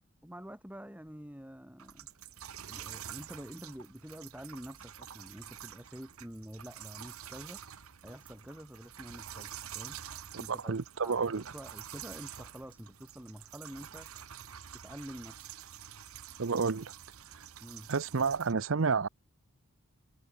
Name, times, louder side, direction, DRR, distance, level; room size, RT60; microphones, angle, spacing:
voice 1, 0.2-2.1 2.7-7.6 8.0-10.0 10.4-10.7 11.0-14.1 14.8-15.5 17.6-17.9, equal, 5° right, 2.1 m, -47 dB
sound 1, 1.8-18.5, right 10 dB, 80° right, 1.1 m, -48 dB
voice 2, 10.3-11.4 16.4-16.9 17.9-19.1, right 5 dB, 60° right, 0.7 m, -30 dB
head